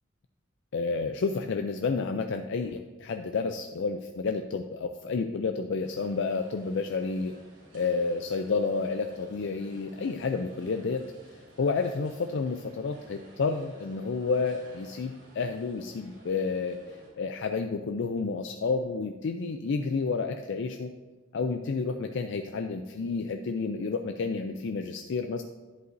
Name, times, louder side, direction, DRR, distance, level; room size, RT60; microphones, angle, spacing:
voice 1, 0.7-7.3 7.7-11.0 11.6-20.9 21.3-25.4, left 4 dB, 60° left, 6 dB, 0.4 m, -30 dB
sound 1, 5.8-17.1, right 1 dB, 70° right, 3.0 m, -54 dB
10.5 x 8.0 x 2.6 m, 1.2 s
head